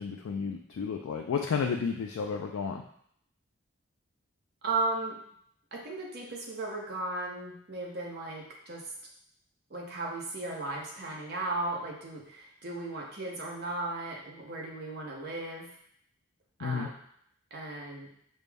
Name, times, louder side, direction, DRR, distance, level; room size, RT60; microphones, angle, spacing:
voice 1, 0.0-2.8 16.6-16.9, left 6 dB, 85° left, 2 dB, 0.3 m, -32 dB
voice 2, 4.6-5.2 5.7-8.9 9.7-15.7 16.6-16.9 17.5-18.1, right 2 dB, 50° right, -2 dB, 0.8 m, -36 dB
5.3 x 2.1 x 3.4 m, 0.68 s
head